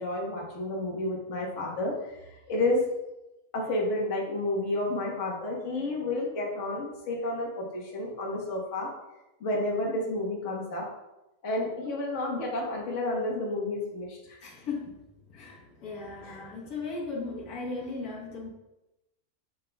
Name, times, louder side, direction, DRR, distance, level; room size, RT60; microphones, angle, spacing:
voice 1, 0.0-1.9 2.5-2.8 3.5-8.9 9.4-10.9 11.4-14.2 16.2-16.4, left 2 dB, 55° left, -2 dB, 1.6 m, -30 dB
voice 2, 14.4-15.0 15.3-18.5, left 3 dB, 90° left, -3 dB, 1.8 m, -37 dB
7.5 x 7.4 x 2.3 m, 0.98 s
omnidirectional pair, 1.5 m